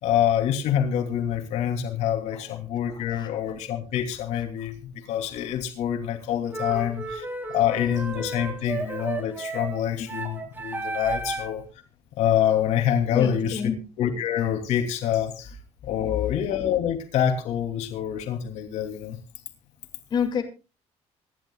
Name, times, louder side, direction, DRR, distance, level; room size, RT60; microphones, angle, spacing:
voice 1, 0.0-11.6 12.2-13.6 14.0-15.6 15.8-19.2, left 10 dB, 75° left, 5 dB, 2.9 m, -26 dB
voice 2, 2.9-3.3 7.5-7.6 13.1-13.8 16.2-16.3 20.1-20.4, left 7 dB, 40° left, 3 dB, 2.5 m, -28 dB
sound 1, 6.5-11.6, right 3 dB, 15° right, 2.2 m, -33 dB
25.0 x 11.5 x 2.4 m, 0.31 s
cardioid pair, 160°, 12 cm